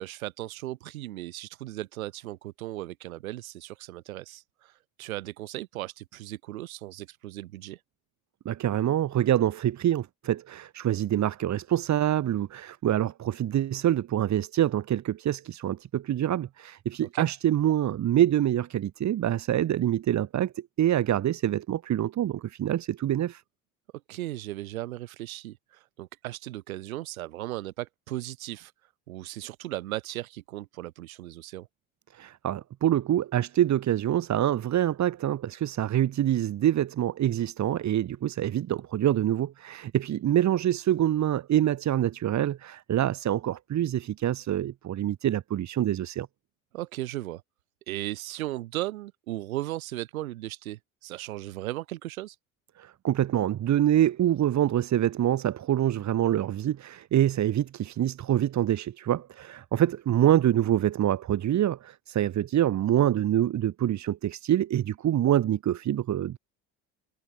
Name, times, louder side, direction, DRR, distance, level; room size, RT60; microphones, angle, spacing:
voice 1, 0.0-7.8 17.1-17.3 24.1-28.7 29.1-31.7 46.7-47.4 47.9-52.4, right 16 dB, 90° right, 7.1 m, -36 dB
voice 2, 8.4-23.4 32.1-46.3 52.8-66.4, right 11 dB, 45° right, 1.1 m, -26 dB
hypercardioid pair, 70°, 41 cm